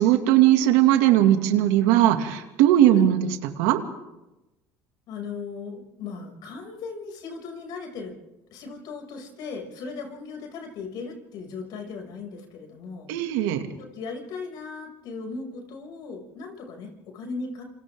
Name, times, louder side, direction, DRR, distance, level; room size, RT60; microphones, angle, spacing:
voice 1, 0.0-3.8 13.1-13.6, right 12 dB, 85° right, 5 dB, 2.4 m, -19 dB
voice 2, 5.1-8.1 8.5-13.1 13.8-17.6, left 4 dB, 65° left, 3 dB, 6.6 m, -37 dB
28.5 x 27.0 x 3.8 m, 0.96 s
supercardioid pair, 95°, 8 cm